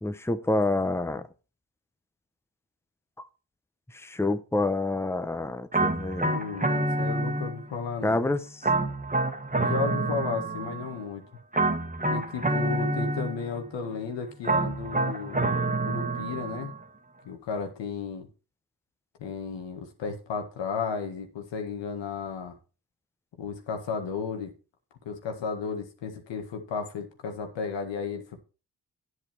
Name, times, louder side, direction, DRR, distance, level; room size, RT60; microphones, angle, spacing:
voice 1, 0.0-1.3 3.9-6.3 8.0-8.6, left 2 dB, 5° left, 0.9 m, -27 dB
sound 1, 5.7-7.8 8.6-11.0 11.5-13.6 14.4-16.8, right 2 dB, 20° right, 1.6 m, -28 dB
voice 2, 6.2-8.2 9.6-11.2 12.1-16.7 17.3-18.3 19.2-22.6 23.4-24.5 25.1-28.4, left 5 dB, 90° left, 1.8 m, -34 dB
9.9 x 8.0 x 4.5 m
supercardioid pair, 50°, 42 cm